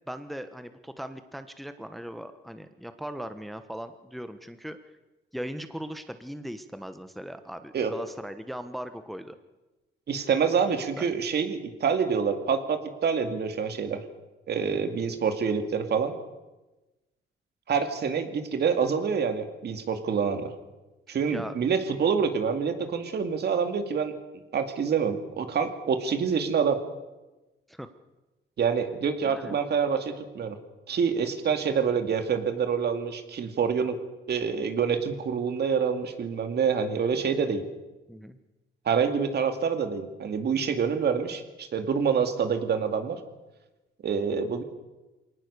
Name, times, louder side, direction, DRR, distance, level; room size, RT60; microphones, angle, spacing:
voice 1, 0.1-4.8 5.3-9.3 10.7-11.1 14.7-15.0 21.3-21.5 27.7-27.9 29.2-29.6 38.1-38.4, equal, ahead, 10 dB, 1.2 m, -39 dB
voice 2, 10.1-14.0 14.5-16.1 17.7-20.5 21.1-24.1 24.5-26.8 28.6-30.6 30.9-34.0 34.3-37.6 38.9-43.2 44.0-44.6, right 6 dB, 55° right, 7 dB, 2.3 m, -26 dB
22.5 x 19.0 x 6.8 m, 1.1 s
cardioid pair, 90°, 20 cm